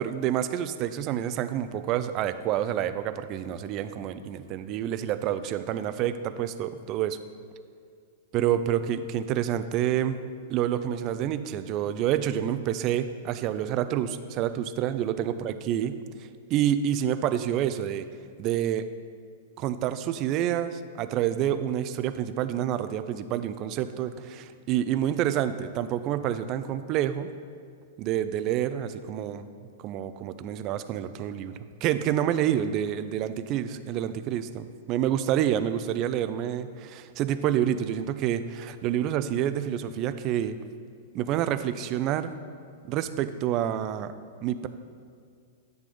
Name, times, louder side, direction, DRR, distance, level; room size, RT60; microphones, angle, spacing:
voice 1, 0.0-7.2 8.3-10.2 10.5-16.0 16.5-18.0 18.4-18.9 19.6-27.3 28.0-29.5 29.8-31.5 31.8-40.6 41.1-42.3 42.8-44.1 44.4-44.7, right 10 dB, 35° right, 11 dB, 0.4 m, -28 dB
10.0 x 3.4 x 5.3 m, 2.2 s
figure-of-eight pair, 100°, 0 cm